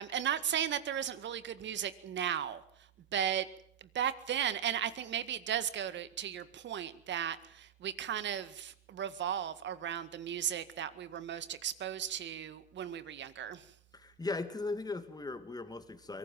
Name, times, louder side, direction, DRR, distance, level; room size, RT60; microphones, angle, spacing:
voice 1, 0.0-2.6 3.1-3.5 3.8-13.7, right 9 dB, 65° right, 13 dB, 1.8 m, -35 dB
voice 2, 13.9-16.2, left 3 dB, 20° left, 9 dB, 2.7 m, -38 dB
23.5 x 18.0 x 7.6 m, 0.68 s
cardioid pair, 90°, 20 cm